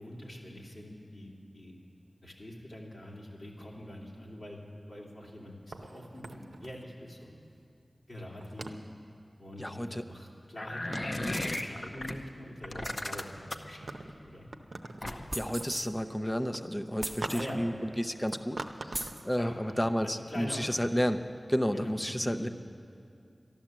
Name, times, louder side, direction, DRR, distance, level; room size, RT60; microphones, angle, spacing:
voice 1, 0.0-1.8 2.2-5.5 5.8-7.4 8.1-8.8 9.4-14.5 17.3-17.6 19.2-20.9 21.7-22.0 22.4-22.5, left 1 dB, 65° left, -3 dB, 2.7 m, -44 dB
sound 1, 5.7-7.2 8.3-9.0 10.4-10.5 10.9-11.3 13.1-13.3 13.7-15.1 15.3-15.8 16.3-16.6 17.2-17.8 18.3-19.3, right 3 dB, 85° right, 0.6 m, -42 dB
voice 2, 9.6-10.0 15.3-22.5, equal, 15° left, 9 dB, 0.6 m, -31 dB
sound 2, 10.6-12.1 12.6-13.7 15.0-15.4, left 1 dB, 45° left, 0.7 m, -35 dB
sound 3, 15.3-15.9 17.0-17.5 18.3-18.4 18.9-19.2, right 1 dB, 25° right, 0.9 m, -38 dB
12.5 x 11.5 x 7.4 m, 2.4 s
wide cardioid pair, 60°, 0 cm